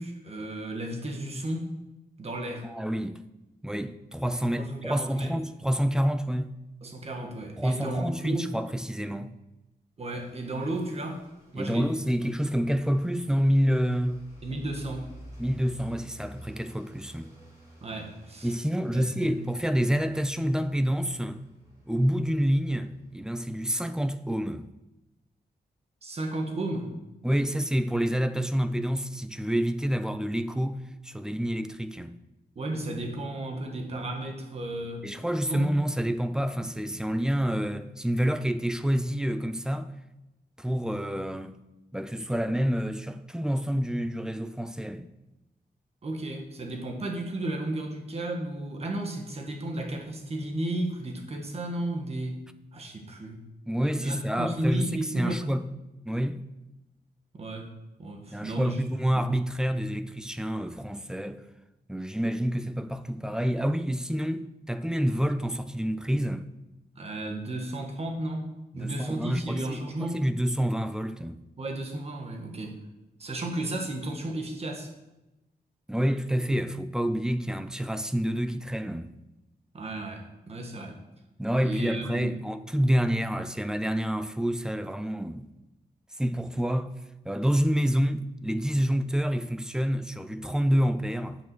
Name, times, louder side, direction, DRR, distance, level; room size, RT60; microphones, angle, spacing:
voice 1, 0.0-1.7 2.2-2.7 4.6-5.3 6.8-8.5 10.0-11.2 11.5-11.9 14.4-15.2 17.8-18.5 18.9-19.4 26.0-26.9 32.5-35.1 35.5-35.7 46.0-53.4 54.0-55.5 57.3-57.7 58.0-58.8 59.1-59.3 66.9-70.2 71.6-72.8 73.2-74.9 79.7-81.0 81.6-82.4, right 1 dB, 40° right, 1.5 m, -33 dB
voice 2, 2.6-3.2 3.6-6.6 7.6-9.3 11.5-14.3 15.4-17.3 18.4-21.4 21.9-24.7 27.2-32.1 35.0-39.9 40.6-41.6 41.9-45.1 53.7-55.7 56.1-56.4 58.3-61.4 61.9-66.5 68.7-71.4 75.9-79.2 81.4-85.5 86.2-86.9 87.3-91.4, equal, 5° right, 0.4 m, -28 dB
sound 1, 10.1-23.8, right 1 dB, 20° right, 3.4 m, -52 dB
8.4 x 7.0 x 6.1 m
wide cardioid pair, 175°, 16 cm